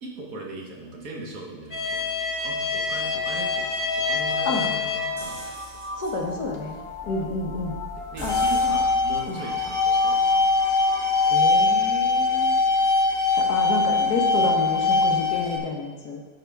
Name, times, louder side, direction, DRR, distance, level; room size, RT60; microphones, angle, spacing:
voice 1, 0.0-2.1 2.4-5.4 7.0-7.2 8.1-10.4, right 2 dB, 60° right, -1 dB, 1.6 m, -39 dB
sound 1, 1.7-5.3 5.7-5.9 6.5-6.6 7.9-15.6, left 3 dB, 40° left, 0.8 m, -23 dB
sound 2, 3.0-11.4, left 2 dB, 25° right, 0.7 m, -38 dB
sound 3, 5.2-11.0, equal, 80° right, 2.5 m, -42 dB
voice 2, 6.0-6.8 7.0-7.8 8.2-8.4 9.3-9.4 11.3-12.6 13.4-16.2, left 3 dB, 65° left, 1 dB, 1.6 m, -29 dB
12.5 x 4.7 x 3.4 m, 1.2 s
omnidirectional pair, 1.8 m